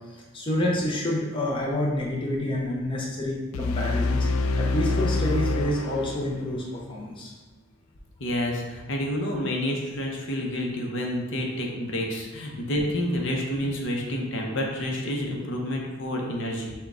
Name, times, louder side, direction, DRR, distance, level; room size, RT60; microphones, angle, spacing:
voice 1, 0.1-4.3 4.6-7.3, left 1 dB, 25° left, -3 dB, 0.5 m, -28 dB
sound 1, 3.5-6.6, left 3 dB, 90° left, 0.3 m, -26 dB
voice 2, 8.2-16.7, left 1 dB, 65° left, 1 dB, 0.7 m, -29 dB
5.9 x 2.2 x 3.6 m, 1.3 s
head